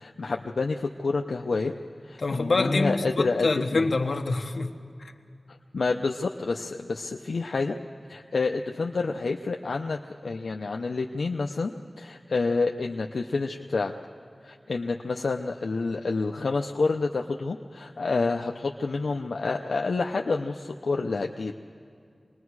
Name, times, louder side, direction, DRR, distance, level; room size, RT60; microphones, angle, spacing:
voice 1, 0.0-1.7 2.0-3.9 5.7-7.8 8.1-13.9 14.4-21.5, left 3 dB, 90° left, 0.7 m, -28 dB
voice 2, 2.2-4.7, left 3 dB, 75° left, 1.3 m, -26 dB
27.0 x 20.5 x 4.8 m
wide cardioid pair, 75°, 0 cm